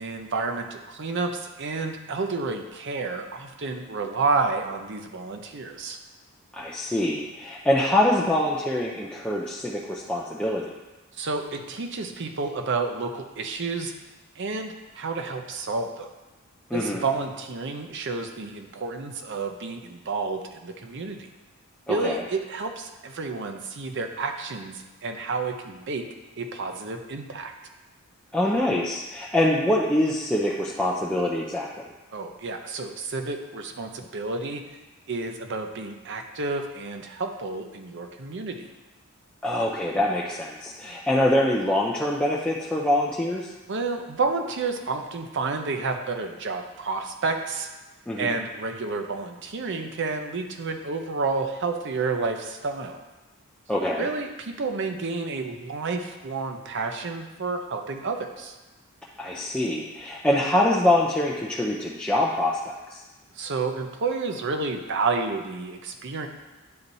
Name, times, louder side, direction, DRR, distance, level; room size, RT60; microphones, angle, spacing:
voice 1, 0.0-6.0 11.2-13.9 14.4-16.1 16.7-21.3 21.9-26.1 26.4-27.5 32.1-34.6 35.1-38.7 40.8-41.0 43.7-47.7 48.2-53.0 54.0-58.6 63.3-66.3, right 4 dB, 55° right, 5 dB, 0.6 m, -30 dB
voice 2, 6.5-10.6 16.7-17.0 21.9-22.2 28.3-31.7 39.4-43.5 48.1-48.4 53.7-54.1 59.2-62.6 62.9-63.0, left 1 dB, 5° left, -5 dB, 0.4 m, -24 dB
9.5 x 4.2 x 2.7 m, 1.1 s
head